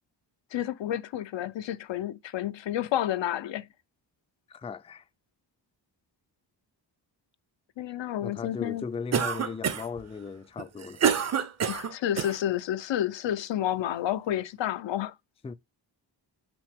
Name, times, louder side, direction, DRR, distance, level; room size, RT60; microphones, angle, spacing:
voice 1, 0.5-3.7 7.8-8.8 11.7-15.1, left 11 dB, 85° left, 0.6 m, -30 dB
voice 2, 4.5-5.0 8.2-11.0 15.4-15.5, left 5 dB, 15° left, 0.3 m, -37 dB
Cough, 9.1-10.0 10.6-12.4, right 7 dB, 40° right, 0.6 m, -27 dB
6.0 x 4.8 x 3.4 m
wide cardioid pair, 120°, 43 cm